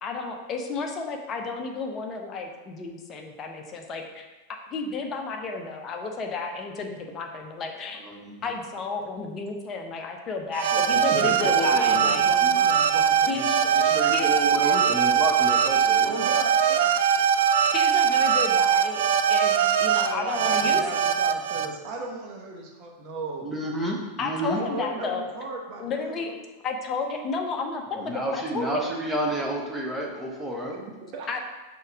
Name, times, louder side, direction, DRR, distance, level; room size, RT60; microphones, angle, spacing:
voice 1, 0.0-4.2 4.7-8.0 8.4-12.2 13.3-13.4 14.1-14.3 17.7-21.1 24.2-25.2 25.8-26.3 26.6-29.0 31.3-31.4, left 4 dB, 25° left, 2 dB, 0.8 m, -32 dB
voice 2, 8.0-8.4 10.7-12.6 13.2-16.2 23.4-24.6 28.0-30.8, right 1 dB, 5° right, -3 dB, 1.2 m, -31 dB
sound 1, 10.5-21.7, right 8 dB, 55° right, 0.3 m, -21 dB
voice 3, 11.1-14.3 16.0-17.5 20.0-23.5 24.5-26.3 30.7-31.3, right 3 dB, 40° right, 0 dB, 1.1 m, -37 dB
5.6 x 3.9 x 4.8 m, 1.2 s
figure-of-eight pair, 90°, 0 cm